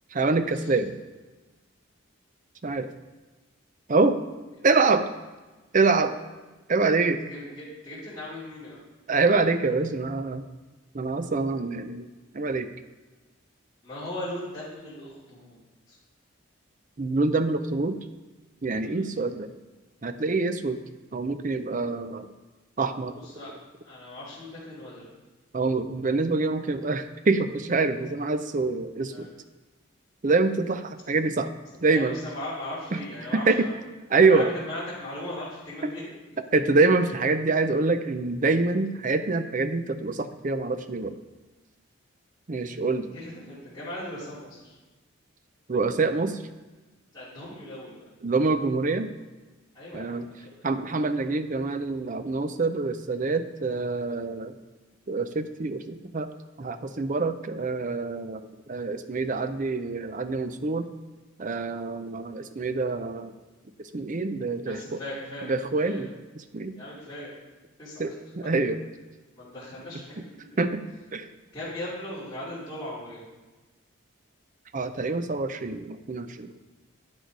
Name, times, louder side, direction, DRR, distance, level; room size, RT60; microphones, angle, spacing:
voice 1, 0.1-0.9 2.6-2.9 3.9-4.2 4.6-5.1 5.7-6.1 6.7-7.2 9.1-10.5 10.9-12.1 12.3-12.7 17.0-18.0 18.6-19.5 20.0-20.8 21.1-22.3 22.8-23.1 25.5-29.3 30.2-31.5 31.8-32.2 33.3-33.7 34.1-34.5 35.8-35.9 36.5-41.2 42.5-43.1 45.7-46.4 48.2-49.1 49.9-50.3 50.6-54.5 55.1-56.3 56.6-60.9 61.4-63.3 63.9-65.0 65.4-66.1 66.4-66.7 68.0-68.8 70.6-70.9 71.1-71.3 74.7-76.5, right 3 dB, 40° right, 10 dB, 0.5 m, -25 dB
voice 2, 7.2-8.8 13.8-15.6 15.9-16.0 18.8-19.0 23.2-23.5 23.8-25.1 29.1-29.3 31.7-33.7 34.1-36.1 43.1-44.8 47.1-47.9 49.7-50.2 64.7-65.5 65.8-66.0 66.8-67.3 67.8-68.1 69.3-70.6 71.5-73.2, left 1 dB, 20° left, -12 dB, 2.8 m, -38 dB
9.7 x 6.5 x 4.7 m, 1.2 s
head